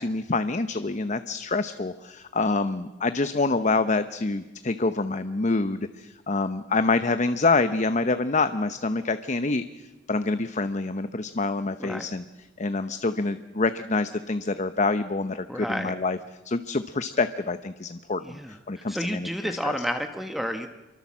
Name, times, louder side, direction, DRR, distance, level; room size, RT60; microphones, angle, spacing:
voice 1, 0.0-9.6 10.1-12.2 12.6-16.2 16.4-19.7, left 3 dB, 40° left, 11 dB, 0.8 m, -26 dB
voice 2, 15.5-15.9 18.2-20.7, equal, ahead, 6 dB, 1.1 m, -31 dB
27.0 x 23.5 x 7.4 m, 1.1 s
head